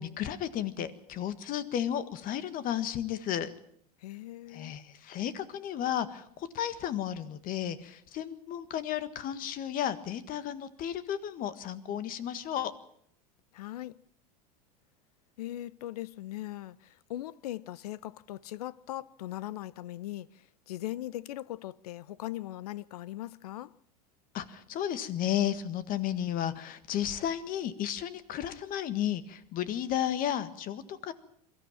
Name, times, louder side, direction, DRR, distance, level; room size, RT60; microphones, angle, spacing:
voice 1, 0.0-3.5 4.5-6.2 6.5-12.7 24.3-31.1, left 10 dB, 45° left, 1.7 m, -33 dB
voice 2, 4.0-4.8 13.5-14.0 15.4-23.7, left 14 dB, 75° left, 0.7 m, -40 dB
23.0 x 14.0 x 8.8 m
hypercardioid pair, 95°, 20 cm